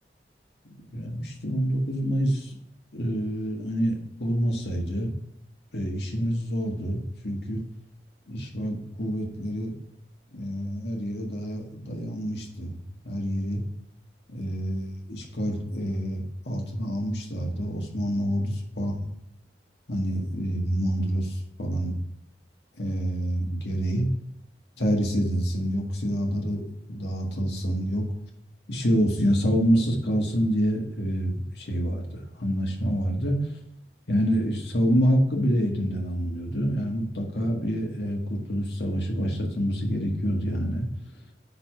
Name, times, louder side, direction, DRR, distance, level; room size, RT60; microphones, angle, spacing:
voice 1, 0.7-2.6 2.9-3.9 4.2-5.1 5.7-7.6 8.3-9.7 10.3-12.8 13.0-13.6 14.3-19.0 19.9-22.0 22.8-24.1 24.8-28.1 28.7-32.1 32.4-33.4 34.1-40.9, equal, 80° left, 1 dB, 1.7 m, -27 dB
9.8 x 3.5 x 4.6 m, 0.80 s
head